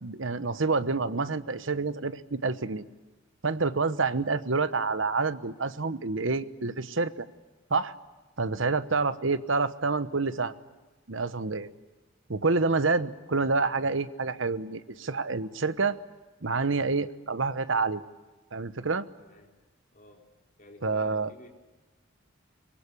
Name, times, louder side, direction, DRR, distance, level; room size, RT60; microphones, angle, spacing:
voice 1, 0.0-2.9 3.4-7.3 7.7-7.9 8.4-10.5 11.1-11.7 12.3-16.0 16.4-18.0 18.5-19.1 20.8-21.3, right 4 dB, 70° right, 13 dB, 1.1 m, -28 dB
voice 2, 19.2-19.5 19.9-20.3 20.6-21.5, left 1 dB, 40° left, 2 dB, 4.2 m, -53 dB
24.0 x 23.0 x 10.0 m, 1.2 s
head